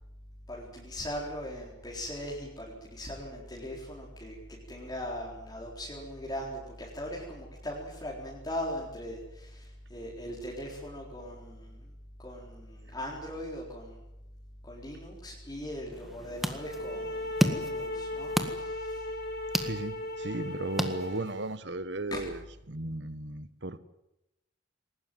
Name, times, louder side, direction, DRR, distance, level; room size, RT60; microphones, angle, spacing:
voice 1, 0.5-4.4 4.7-11.8 12.2-14.0 14.6-19.0 22.1-22.2, equal, 20° left, 4.1 m, -39 dB
sound 1, 15.9-21.6, equal, ahead, 1.7 m, -34 dB
sound 2, 16.5-21.5, left 1 dB, 60° left, 7.3 m, -37 dB
voice 2, 19.6-22.4 22.7-23.8, right 2 dB, 65° right, 1.4 m, -35 dB
21.5 x 19.5 x 9.3 m
head